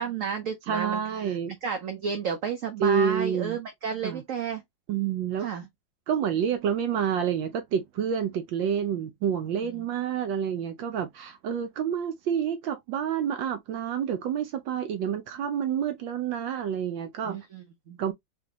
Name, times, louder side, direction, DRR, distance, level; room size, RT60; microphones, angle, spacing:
voice 1, 0.0-1.4 1.6-4.6 5.4-5.7 9.7-9.8 17.2-18.0, right 6 dB, 60° right, 0.8 m, -32 dB
voice 2, 0.7-1.6 2.8-3.6 4.0-4.2 4.9-5.5 6.1-17.4 18.0-18.1, right 8 dB, 75° right, 1.4 m, -28 dB
3.7 x 3.4 x 2.9 m
omnidirectional pair, 2.1 m